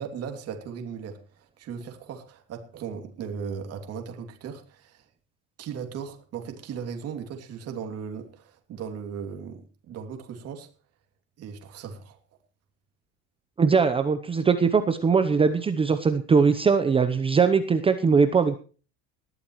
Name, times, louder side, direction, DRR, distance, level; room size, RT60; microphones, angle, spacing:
voice 1, 0.0-5.0 5.6-10.7 11.4-12.2, right 7 dB, 40° right, 2.9 m, -37 dB
voice 2, 13.6-18.5, right 5 dB, 15° right, 0.8 m, -21 dB
20.0 x 13.0 x 3.1 m
cardioid pair, 160°, 37 cm